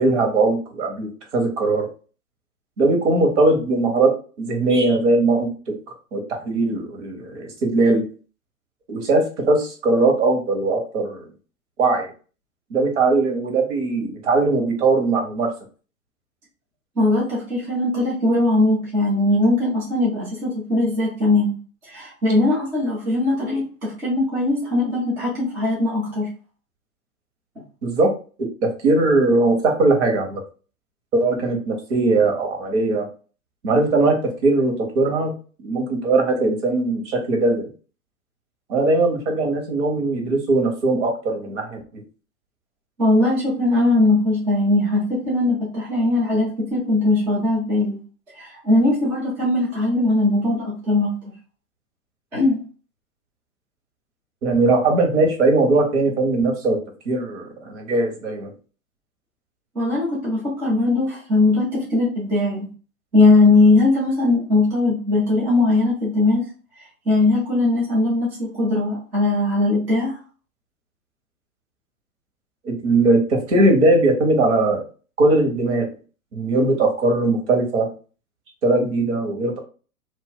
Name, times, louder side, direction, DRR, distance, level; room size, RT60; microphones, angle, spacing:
voice 1, 0.0-1.9 2.8-5.5 6.1-8.0 8.9-11.3 11.8-12.1 12.7-15.5 27.8-28.1 28.4-30.4 31.1-33.1 33.6-34.2 34.4-35.3 35.6-37.6 38.7-41.8 54.4-56.8 57.0-58.5 72.6-74.8 75.2-75.9 76.3-77.9 78.6-79.6, right 2 dB, 55° right, 2 dB, 1.3 m, -20 dB
voice 2, 17.0-21.5 21.8-26.3 43.0-48.0 48.3-51.1 52.3-52.6 59.7-62.7 63.1-66.5 67.1-70.2, left 2 dB, 5° right, -7 dB, 0.4 m, -20 dB
2.6 x 2.1 x 4.0 m, 0.37 s
figure-of-eight pair, 115°, 44 cm